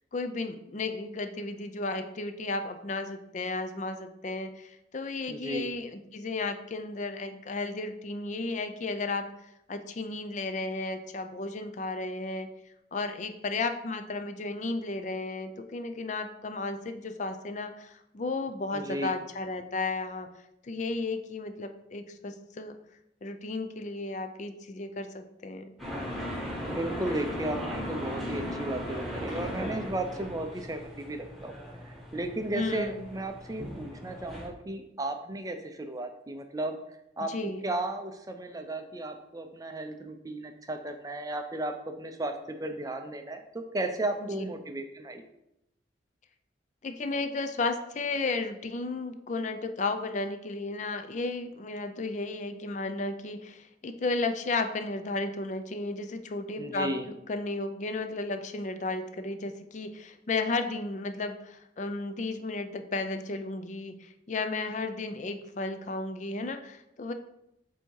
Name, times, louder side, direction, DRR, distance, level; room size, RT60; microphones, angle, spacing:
voice 1, 0.0-9.3 9.7-12.5 12.9-20.3 20.6-22.7 23.2-25.8 32.5-33.1 37.3-37.6 44.2-44.4 46.8-67.1, left 3 dB, 40° left, 8 dB, 0.4 m, -34 dB
voice 2, 5.3-5.7 18.7-19.1 26.6-31.5 31.9-36.8 37.2-45.2 56.6-57.1, right 1 dB, 20° right, 6 dB, 0.4 m, -34 dB
sound 1, 25.8-34.5, equal, ahead, 1.2 m, -37 dB
7.9 x 2.8 x 4.6 m, 0.83 s
head